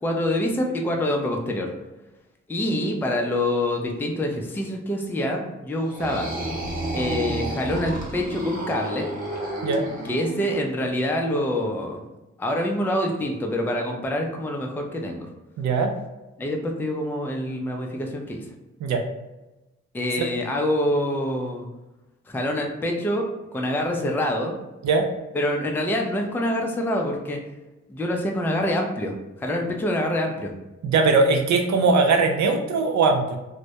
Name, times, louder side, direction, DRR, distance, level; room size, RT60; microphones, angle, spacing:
voice 1, 0.0-1.7 2.5-6.3 6.9-9.1 10.0-12.0 12.4-15.3 16.4-18.4 19.9-21.7 22.3-23.3 23.5-24.6 25.3-27.4 27.9-30.5, left 1 dB, 5° left, 2 dB, 0.4 m, -26 dB
sound 1, 5.8-10.6, right 1 dB, 30° right, 0.7 m, -30 dB
voice 2, 15.6-15.9 18.8-19.0 20.2-20.3 24.8-25.0 30.8-33.4, right 4 dB, 70° right, 4 dB, 0.5 m, -20 dB
2.1 x 2.0 x 2.7 m, 1.0 s
cardioid pair, 60°, 29 cm